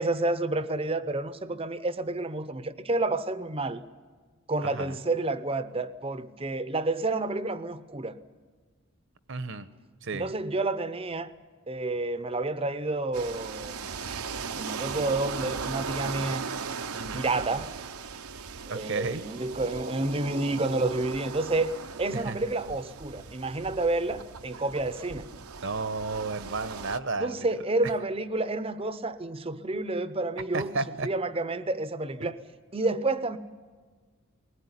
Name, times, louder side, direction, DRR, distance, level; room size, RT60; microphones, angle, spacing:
voice 1, 0.0-3.8 4.5-8.2 10.1-11.3 11.7-13.8 14.5-16.4 17.1-17.7 18.7-21.7 22.0-25.3 27.2-30.7 31.0-32.4 32.7-33.4, right 2 dB, 25° right, 0.7 m, -29 dB
voice 2, 4.6-5.0 9.3-9.7 10.0-10.3 16.9-17.3 18.7-19.2 22.1-22.4 25.6-27.5 30.5-31.1 32.2-32.3, right 3 dB, 60° right, 0.9 m, -32 dB
sound 1, 13.1-27.0, right 5 dB, 85° right, 0.9 m, -38 dB
21.0 x 18.0 x 9.8 m
head